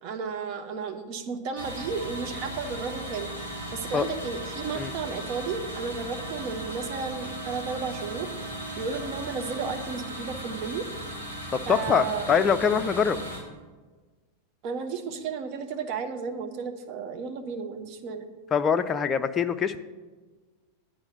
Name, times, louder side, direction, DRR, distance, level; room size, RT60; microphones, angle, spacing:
voice 1, 0.0-3.3 3.7-8.3 8.8-10.9 11.7-12.3 14.6-18.3, right 5 dB, 40° right, 7 dB, 0.8 m, -33 dB
sound 1, 1.6-13.4, right 1 dB, 70° right, 3.0 m, -37 dB
voice 2, 11.5-13.2 18.5-19.8, left 7 dB, 20° left, 9 dB, 0.4 m, -24 dB
8.8 x 5.0 x 7.1 m, 1.3 s
figure-of-eight pair, 90°, 0 cm